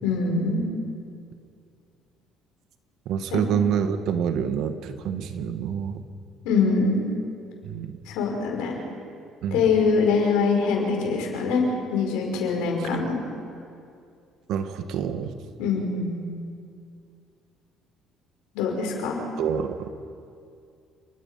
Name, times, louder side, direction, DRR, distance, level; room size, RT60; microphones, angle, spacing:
voice 1, 0.0-0.6 3.3-3.4 6.4-7.0 8.1-8.7 9.5-13.2 15.6-16.2 18.5-19.2, left 4 dB, 85° left, 1 dB, 5.5 m, -23 dB
voice 2, 3.0-6.0 7.6-8.0 9.4-9.7 12.8-13.0 14.5-15.3 19.4-19.9, right 8 dB, 70° right, 8 dB, 1.6 m, -27 dB
29.5 x 20.5 x 5.8 m, 2.4 s
supercardioid pair, 85°, 0 cm